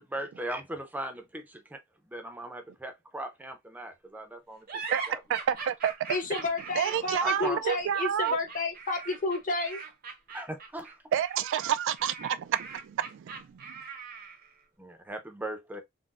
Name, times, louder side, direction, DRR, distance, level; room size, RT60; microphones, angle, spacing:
voice 1, 0.0-1.8 2.1-5.2 6.9-7.6 10.3-11.0 14.8-15.8, right 1 dB, 10° right, 0.5 m, -39 dB
sound 1, 4.7-14.5, right 5 dB, 45° right, 0.7 m, -41 dB
voice 2, 5.3-5.9 6.8-8.4 11.1-13.6, right 9 dB, 65° right, 0.3 m, -29 dB
voice 3, 6.1-9.8, left 3 dB, 40° left, 0.9 m, -31 dB
3.9 x 2.1 x 2.4 m
head